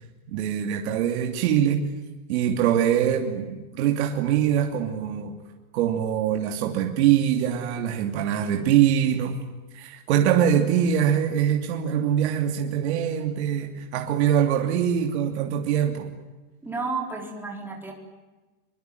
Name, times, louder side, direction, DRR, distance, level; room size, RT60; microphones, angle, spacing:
voice 1, 0.3-1.9 2.3-5.3 5.7-9.4 9.7-16.1, right 9 dB, 45° right, 3 dB, 3.0 m, -23 dB
voice 2, 16.6-17.9, right 4 dB, 5° right, 1 dB, 3.8 m, -31 dB
25.0 x 24.0 x 9.5 m, 1.2 s
supercardioid pair, 175°, 45 cm